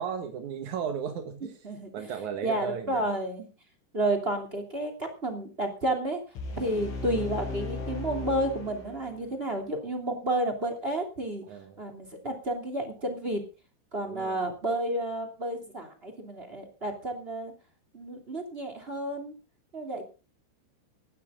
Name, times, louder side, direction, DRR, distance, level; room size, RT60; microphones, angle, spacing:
voice 1, 0.0-1.5 1.9-3.0 11.5-11.8 14.0-14.4, right 7 dB, 70° right, 6 dB, 1.8 m, -35 dB
voice 2, 1.4-1.9 2.4-3.5 3.9-6.2 6.6-11.4 11.8-13.4 13.9-17.5 17.9-19.3 19.7-20.0, right 1 dB, 20° right, 6 dB, 2.1 m, -31 dB
sound 1, 6.4-9.4, left 3 dB, 90° left, 7.5 m, -37 dB
18.0 x 12.5 x 3.8 m, 0.33 s
omnidirectional pair, 5.5 m